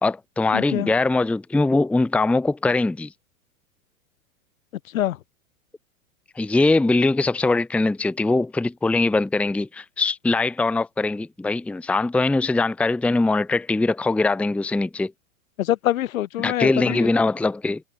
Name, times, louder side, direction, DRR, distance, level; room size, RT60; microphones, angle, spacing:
voice 1, 0.0-3.1 6.4-15.1 16.4-17.8, left 3 dB, 5° left, 0.7 m, -22 dB
voice 2, 0.5-0.9 4.8-5.2 15.6-17.1, left 13 dB, 70° left, 1.9 m, -25 dB
hypercardioid pair, 110°, 42 cm